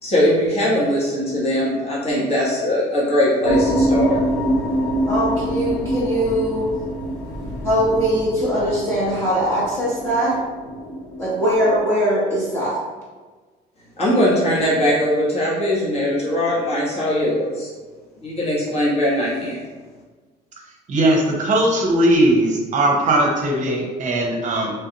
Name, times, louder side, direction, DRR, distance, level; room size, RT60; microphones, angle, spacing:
voice 1, 0.0-4.2 14.0-17.7 18.2-19.6, left 1 dB, 35° left, -7 dB, 1.2 m, -20 dB
sound 1, 3.4-11.8, right 1 dB, 85° left, 0.9 m, -25 dB
voice 2, 5.1-6.7 7.6-10.3 11.2-12.8, equal, 15° left, -9 dB, 1.0 m, -21 dB
voice 3, 20.9-24.7, right 1 dB, 45° right, 0 dB, 0.7 m, -18 dB
3.1 x 2.4 x 2.9 m, 1.4 s
cardioid pair, 110°, 17 cm